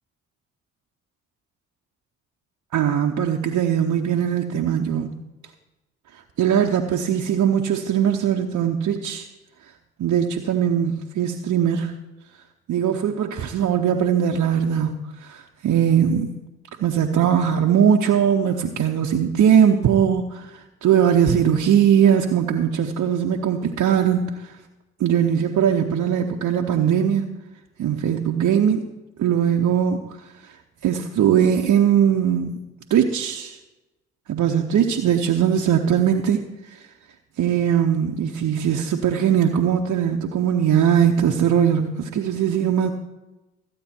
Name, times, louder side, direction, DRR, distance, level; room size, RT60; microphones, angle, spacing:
voice 1, 2.7-5.1 6.4-9.3 10.0-11.9 12.7-14.9 15.2-16.3 16.8-20.5 20.8-24.3 25.0-27.3 27.8-28.8 29.2-30.0 30.8-32.6 32.9-33.6 34.3-36.4 37.4-42.9, right 8 dB, 60° right, 1 dB, 0.9 m, -20 dB
14.0 x 8.6 x 4.4 m, 1.0 s
hypercardioid pair, 45°, 31 cm